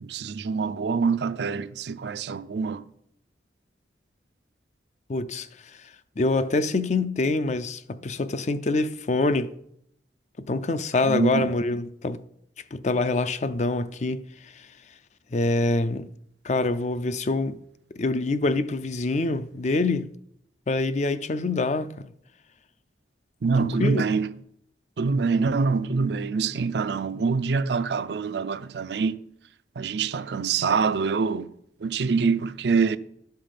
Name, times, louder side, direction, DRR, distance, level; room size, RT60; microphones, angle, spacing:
voice 1, 0.0-2.9 11.0-11.5 23.4-24.3 25.0-29.2 29.8-31.5 31.8-33.0, right 5 dB, 65° right, 0.4 m, -25 dB
voice 2, 5.1-5.5 6.2-9.5 10.5-12.2 12.7-14.7 15.3-16.1 16.4-17.6 18.0-20.1 20.7-22.1 23.6-24.1, left 2 dB, 40° left, 0.4 m, -25 dB
12.0 x 5.7 x 5.1 m
head